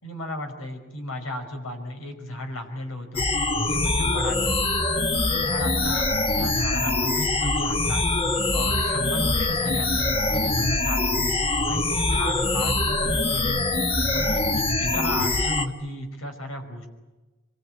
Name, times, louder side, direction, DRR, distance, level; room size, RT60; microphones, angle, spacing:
voice 1, 0.0-3.3 3.7-4.6 5.3-6.1 6.3-8.1 8.5-11.1 11.7-13.6 14.1-16.9, left 1 dB, 80° left, 5 dB, 5.4 m, -34 dB
sound 1, 3.2-15.7, left 2 dB, 25° left, 1.5 m, -24 dB
26.0 x 23.0 x 9.0 m, 1.2 s
head